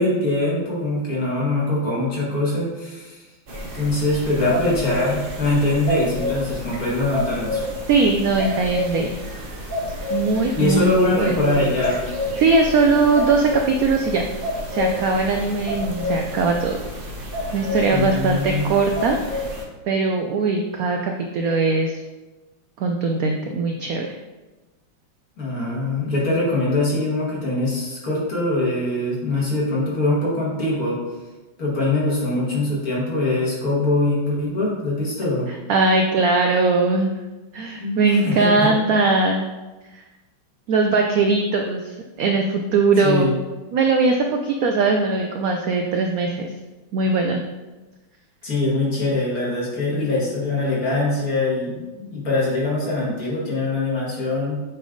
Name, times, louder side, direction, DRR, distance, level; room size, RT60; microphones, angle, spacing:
voice 1, 0.0-3.2 3.7-7.6 10.5-12.0 17.9-18.7 25.4-31.0 31.6-35.5 37.8-38.7 43.0-43.4 48.4-54.6, left 2 dB, 50° left, -6 dB, 2.3 m, -22 dB
sound 1, 3.5-19.6, left 1 dB, 45° right, 0.8 m, -29 dB
voice 2, 7.9-9.2 10.1-11.3 12.4-14.3 14.7-16.8 17.5-19.5 19.9-22.0 22.8-24.1 35.7-37.1 37.5-39.5 39.9-40.0 40.7-43.4 43.7-46.5 46.9-47.4, right 3 dB, 85° right, 3 dB, 0.7 m, -20 dB
8.3 x 3.4 x 3.8 m, 1.1 s
omnidirectional pair, 2.1 m